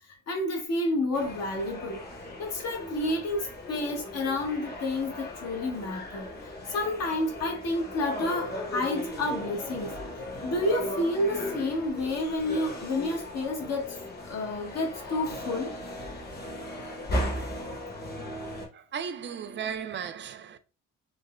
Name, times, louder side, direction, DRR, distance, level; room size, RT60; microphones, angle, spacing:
voice 1, 0.3-2.0 2.4-6.3 6.7-9.9 10.4-14.0 14.2-15.7, left 2 dB, 55° left, 0.9 m, -30 dB
sound 1, 1.1-18.7, left 1 dB, 30° left, 0.9 m, -37 dB
voice 2, 18.7-20.6, right 7 dB, 40° right, 0.4 m, -35 dB
3.7 x 2.0 x 2.3 m
cardioid pair, 90°, 30 cm